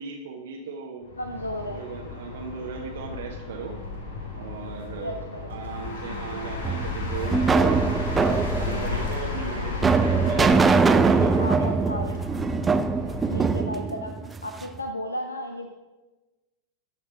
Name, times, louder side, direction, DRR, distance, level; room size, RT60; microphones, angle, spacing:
voice 1, 0.0-1.1 1.7-3.8 4.4-7.8 8.2-12.1, right 5 dB, 60° right, 1 dB, 0.9 m, -36 dB
sound 1, 1.0-13.7, left 4 dB, 60° left, 1.6 m, -34 dB
voice 2, 1.2-1.8 5.0-5.4 11.4-12.2 13.3-15.7, left 1 dB, 80° left, 6 dB, 0.5 m, -34 dB
sound 2, 6.6-14.8, right 4 dB, 15° right, 0.4 m, -22 dB
13.5 x 4.4 x 4.9 m, 1.1 s
figure-of-eight pair, 90°, 0 cm